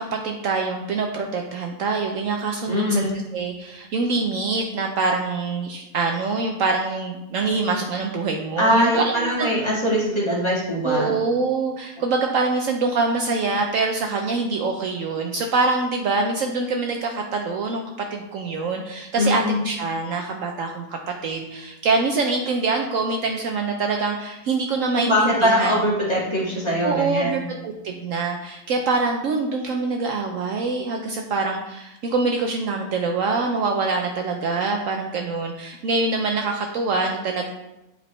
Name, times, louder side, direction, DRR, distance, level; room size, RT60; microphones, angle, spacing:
voice 1, 0.0-9.5 10.8-17.8 18.1-25.7 26.8-37.5, right 3 dB, 65° right, 2 dB, 0.9 m, -25 dB
voice 2, 2.7-3.1 8.6-11.1 19.1-19.6 24.9-27.4, equal, 20° left, -6 dB, 1.7 m, -22 dB
7.9 x 4.3 x 3.1 m, 0.91 s
omnidirectional pair, 1.6 m